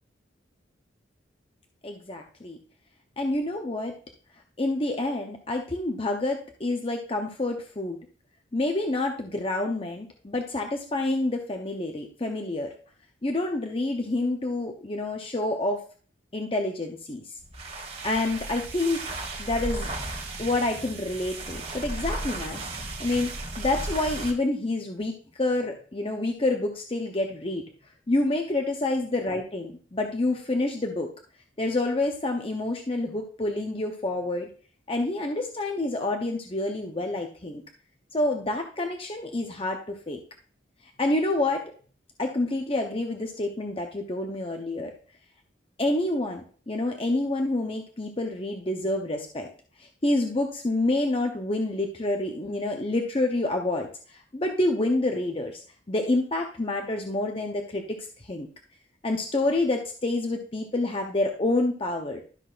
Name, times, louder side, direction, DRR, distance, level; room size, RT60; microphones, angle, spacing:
voice 1, 1.8-2.6 3.2-3.9 4.6-8.0 8.5-12.7 13.2-15.8 16.3-17.2 18.0-19.0 19.4-19.9 20.4-22.6 23.0-27.6 28.1-31.1 31.6-34.5 34.9-37.6 38.1-40.2 41.0-41.6 42.2-44.9 45.8-49.5 50.0-55.6 55.9-58.5 59.0-62.2, left 2 dB, 30° left, 3 dB, 0.8 m, -28 dB
sound 1, 17.4-24.4, right 2 dB, 30° right, 1.6 m, -35 dB
12.5 x 6.2 x 2.5 m, 0.41 s
head